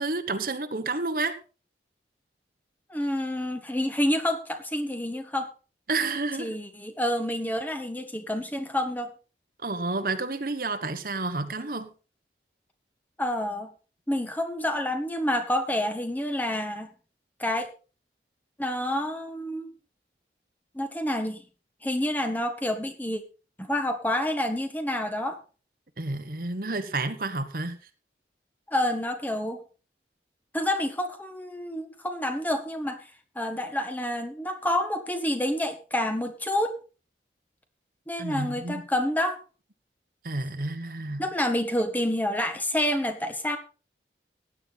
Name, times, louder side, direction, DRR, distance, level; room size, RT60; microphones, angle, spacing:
voice 1, 0.0-1.4 5.9-6.5 9.6-11.9 26.0-27.8 38.2-38.8 40.2-41.2, right 3 dB, 50° right, 1.2 m, -30 dB
voice 2, 2.9-5.5 6.4-9.1 13.2-13.7 14.1-16.9 17.4-17.7 18.6-19.7 20.7-21.4 21.8-23.2 23.6-25.4 28.7-29.6 30.5-33.0 33.3-36.8 38.1-39.4 41.2-43.6, left 1 dB, 10° left, 1.4 m, -28 dB
16.0 x 10.0 x 4.1 m
head